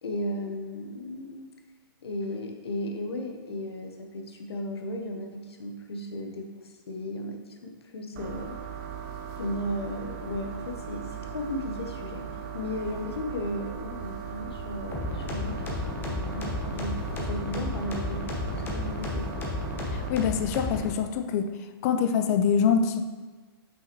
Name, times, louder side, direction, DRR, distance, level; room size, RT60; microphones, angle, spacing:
voice 1, 0.0-1.5 2.0-8.6 9.4-19.5, left 1 dB, 85° left, 3 dB, 0.9 m, -35 dB
sound 1, 8.2-20.1, right 7 dB, 40° right, 0.6 m, -38 dB
sound 2, 14.9-20.9, left 3 dB, 15° left, 0.9 m, -33 dB
voice 2, 19.9-21.5 21.8-23.0, left 7 dB, 40° left, 8 dB, 0.4 m, -25 dB
5.6 x 5.6 x 3.0 m, 1.3 s
hypercardioid pair, 135°, 13 cm